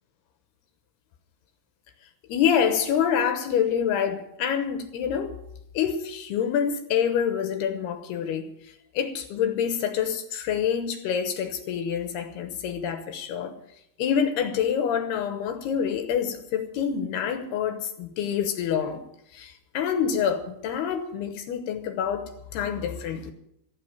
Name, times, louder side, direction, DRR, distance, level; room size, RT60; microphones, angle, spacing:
voice 1, 2.3-5.4 5.7-13.6 14.0-19.0 19.3-23.3, left 8 dB, 75° left, 2.8 m, -27 dB
15.0 x 8.3 x 8.9 m
omnidirectional pair, 5.1 m